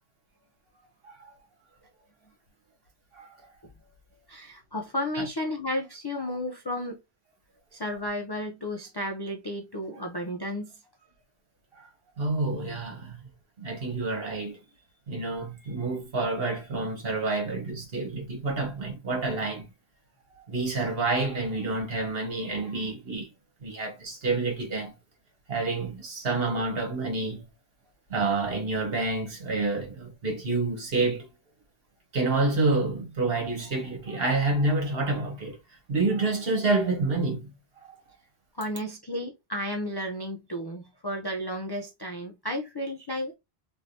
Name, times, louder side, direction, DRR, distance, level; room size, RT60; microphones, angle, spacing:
voice 1, 3.1-3.5 5.2-5.3 10.0-10.1 11.8-11.9 12.2-13.2 13.6-14.6 15.1-19.7 20.5-23.3 23.6-24.9 25.5-27.4 28.1-31.3 32.1-35.6 35.9-37.5 37.8-37.9, right 3 dB, 65° right, 1.4 m, -28 dB
voice 2, 4.3-7.0 7.7-10.7 38.5-43.4, left 1 dB, 40° left, 0.3 m, -33 dB
3.3 x 2.6 x 2.6 m
omnidirectional pair, 1.1 m